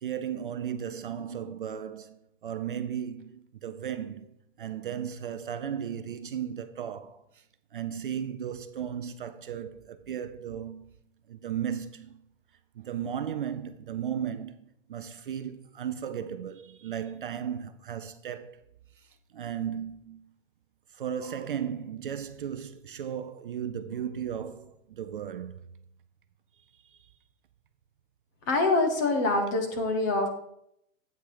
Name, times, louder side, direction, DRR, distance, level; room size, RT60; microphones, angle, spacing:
voice 1, 0.0-3.3 3.6-4.3 4.6-7.2 7.7-10.9 11.3-12.2 12.8-14.5 14.9-18.6 19.3-20.2 21.0-25.5, right 8 dB, 40° right, 0.5 m, -35 dB
voice 2, 28.5-30.3, left 2 dB, 15° left, 0.5 m, -25 dB
8.5 x 6.1 x 4.9 m
hypercardioid pair, 160°, 40 cm